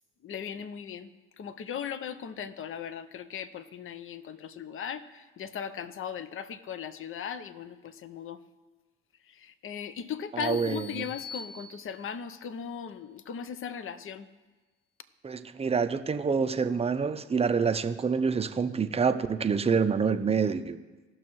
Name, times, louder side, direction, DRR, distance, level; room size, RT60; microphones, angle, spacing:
voice 1, 0.2-8.4 9.4-14.3, left 7 dB, 45° left, 13 dB, 0.7 m, -38 dB
voice 2, 10.3-11.0 15.2-20.8, right 5 dB, 20° right, 10 dB, 0.6 m, -27 dB
sound 1, 10.4-12.3, left 5 dB, 15° left, 1.3 m, -44 dB
17.5 x 6.2 x 3.1 m, 1.3 s
supercardioid pair, 75°, 30 cm